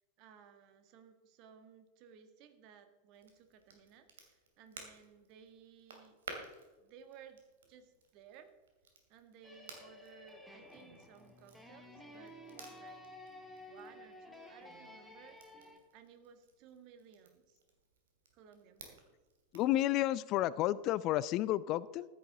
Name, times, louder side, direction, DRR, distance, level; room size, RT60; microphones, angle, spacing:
voice 1, 0.2-6.2 6.8-8.5 9.1-13.0 13.7-15.6 15.9-17.6 18.3-19.2, right 7 dB, 40° right, 8 dB, 1.4 m, -59 dB
Crackle, 3.1-19.8, right 4 dB, 65° right, 2.5 m, -56 dB
sound 1, 9.4-15.8, left 1 dB, ahead, 1.9 m, -53 dB
voice 2, 19.5-22.1, left 14 dB, 40° left, 19 dB, 0.3 m, -31 dB
15.0 x 10.5 x 3.7 m, 1.2 s
figure-of-eight pair, 90°, 0 cm